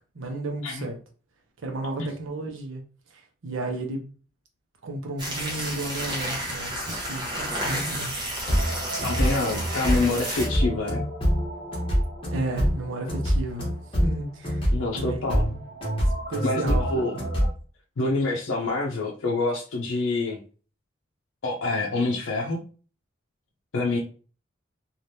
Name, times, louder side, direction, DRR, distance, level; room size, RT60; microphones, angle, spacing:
voice 1, 0.1-1.0 1.6-2.8 3.1-4.1 4.8-8.1 8.9-9.0 12.3-13.7 14.0-14.6 14.9-15.6 16.3-17.2, right 2 dB, 85° right, 0.7 m, -33 dB
sound 1, 5.2-10.5, right 1 dB, 20° right, 0.8 m, -31 dB
sound 2, 8.4-17.5, equal, 30° left, 1.1 m, -26 dB
voice 2, 9.0-11.0 14.7-15.5 16.4-17.1 18.0-20.4 21.4-22.6 23.7-24.0, left 3 dB, 85° left, 0.5 m, -26 dB
3.3 x 2.4 x 2.7 m
head